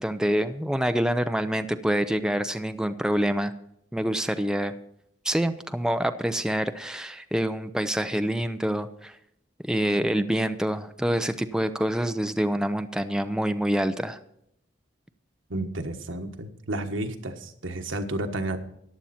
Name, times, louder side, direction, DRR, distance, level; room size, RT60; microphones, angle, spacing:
voice 1, 0.0-3.5 3.9-4.7 5.2-9.2 9.6-14.2, equal, 5° right, 8 dB, 0.5 m, -26 dB
voice 2, 15.5-18.6, right 1 dB, 85° right, 6 dB, 1.5 m, -31 dB
14.5 x 10.5 x 4.3 m, 0.75 s
head